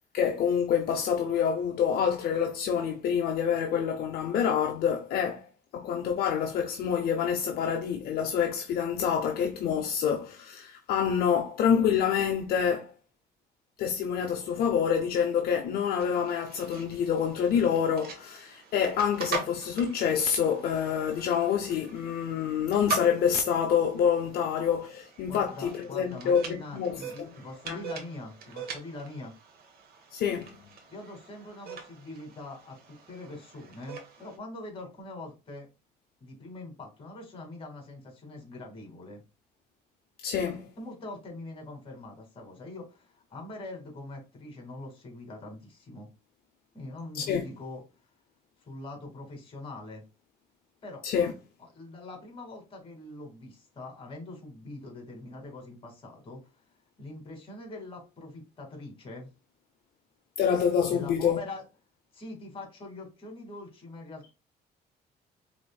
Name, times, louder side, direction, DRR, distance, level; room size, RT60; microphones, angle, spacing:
voice 1, 0.1-12.9 13.8-27.3 27.7-27.8 30.1-30.5 40.2-40.7 47.1-47.5 51.0-51.3 60.4-61.4, left 7 dB, 65° left, 0.6 m, -27 dB
sound 1, 16.0-34.4, right 4 dB, 65° right, 1.2 m, -42 dB
voice 2, 25.2-29.3 30.9-35.7 36.2-39.2 40.8-46.1 46.7-47.8 48.6-50.0 50.8-51.0 51.6-56.4 57.0-59.3 60.9-61.6 62.1-64.3, left 2 dB, 30° left, 2.2 m, -43 dB
5.0 x 3.5 x 2.3 m
cardioid pair, 110°, 17 cm